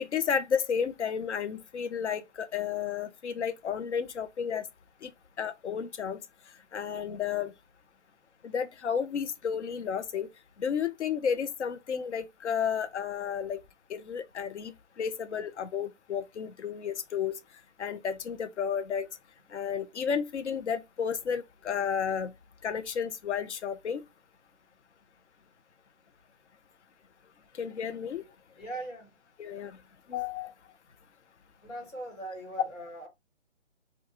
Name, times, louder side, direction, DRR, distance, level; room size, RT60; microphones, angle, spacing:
voice 1, 0.0-4.6 5.0-5.1 5.4-6.2 6.7-7.5 8.4-10.3 10.6-13.6 13.9-17.4 17.8-19.1 19.5-22.3 22.6-24.0 27.6-28.2 29.4-29.8 30.1-30.5, left 7 dB, 65° left, 0.6 m, -32 dB
voice 2, 28.5-29.1 31.6-33.1, right 2 dB, 85° left, 1.7 m, -40 dB
2.5 x 2.3 x 2.8 m
figure-of-eight pair, 155°, 38 cm